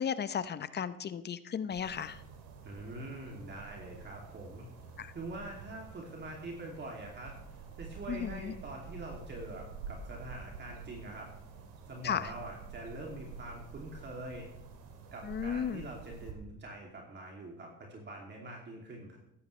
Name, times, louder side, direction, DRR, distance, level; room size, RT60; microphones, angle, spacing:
voice 1, 0.0-2.2 5.0-5.1 8.1-8.5 12.0-12.3 15.2-15.8, left 8 dB, 35° left, 13 dB, 0.8 m, -35 dB
sound 1, 1.7-16.3, right 5 dB, 90° right, 2.3 m, -48 dB
voice 2, 2.6-4.7 5.1-11.3 11.9-14.5 15.1-19.2, right 2 dB, 35° right, -1 dB, 2.7 m, -44 dB
14.5 x 11.5 x 3.3 m, 0.84 s
supercardioid pair, 100°, 30 cm